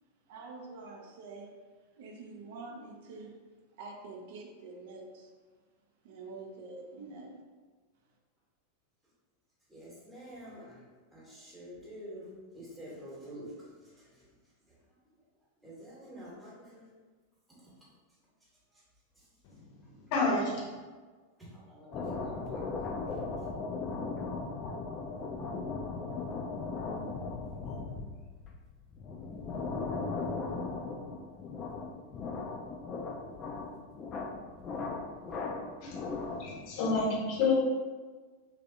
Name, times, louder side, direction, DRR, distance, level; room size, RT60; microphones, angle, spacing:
voice 1, 0.3-1.5 1.9-3.4 3.8-5.3 6.0-7.4, right 3 dB, 50° right, 1 dB, 0.5 m, -46 dB
voice 2, 9.7-14.2 14.7-15.0 15.6-16.9 17.5-17.7 18.7-18.8 19.2-19.3 19.8-20.0 21.4-22.9 23.4-23.5, equal, ahead, -8 dB, 1.0 m, -48 dB
voice 3, 19.4-20.7 35.8-37.5, left 3 dB, 45° left, -3 dB, 0.8 m, -31 dB
sound 1, 21.9-36.6, left 4 dB, 30° left, 0.4 m, -37 dB
3.2 x 2.5 x 2.6 m, 1.4 s
figure-of-eight pair, 90°, 0 cm